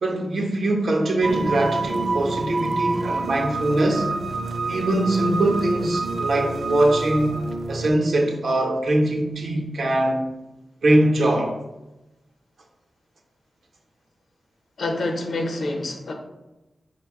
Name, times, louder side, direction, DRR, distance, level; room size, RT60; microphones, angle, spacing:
voice 1, 0.0-4.1 4.7-7.3 7.7-10.3 10.8-11.6, right 1 dB, 70° right, 0.7 m, -22 dB
sound 1, 1.2-7.9, right 3 dB, 40° right, 0.3 m, -28 dB
voice 2, 14.8-16.1, left 2 dB, 75° left, 0.6 m, -27 dB
5.0 x 2.2 x 4.6 m
wide cardioid pair, 170°, 0 cm